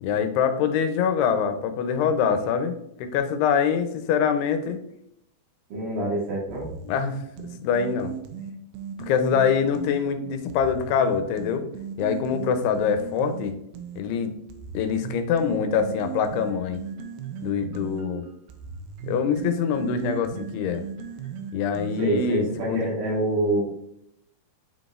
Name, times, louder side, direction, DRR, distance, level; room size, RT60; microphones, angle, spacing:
voice 1, 0.0-4.8 6.9-7.2 7.6-8.1 9.0-11.6 12.0-13.6 14.0-14.3 14.7-16.8 17.4-18.2 19.1-20.8 21.5-22.8, left 6 dB, 90° left, 8 dB, 2.8 m, -24 dB
voice 2, 5.7-6.7 22.0-23.6, right 1 dB, 65° right, -5 dB, 3.6 m, -26 dB
sound 1, 6.5-10.0 10.5-14.0 14.5-22.3, right 7 dB, 85° right, 2.5 m, -37 dB
9.5 x 4.0 x 2.5 m, 0.75 s
omnidirectional pair, 4.6 m